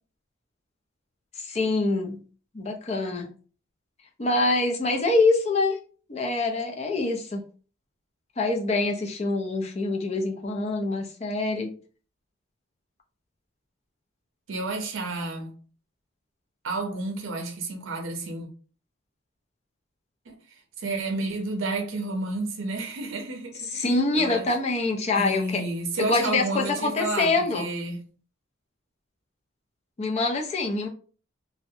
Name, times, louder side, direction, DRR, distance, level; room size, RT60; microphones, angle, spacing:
voice 1, 1.4-2.2 2.5-3.3 4.2-5.8 6.1-7.4 8.4-11.7 23.7-25.6 26.0-27.6 30.0-30.9, left 3 dB, 30° left, 0.4 m, -25 dB
voice 2, 14.5-15.5 16.6-18.5 20.3-20.4 20.8-23.9 24.1-24.5 25.1-28.0, right 2 dB, 75° right, 0.6 m, -31 dB
2.5 x 2.1 x 2.6 m
head